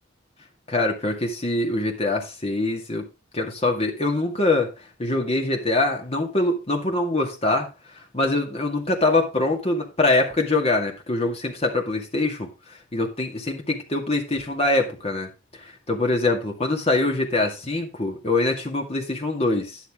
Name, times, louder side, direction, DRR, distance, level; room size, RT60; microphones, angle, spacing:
voice 1, 0.7-3.1 3.3-4.7 5.0-7.7 8.1-12.5 12.9-15.3 15.9-19.8, left 2 dB, 30° left, 2.1 m, -23 dB
10.5 x 7.1 x 3.7 m
head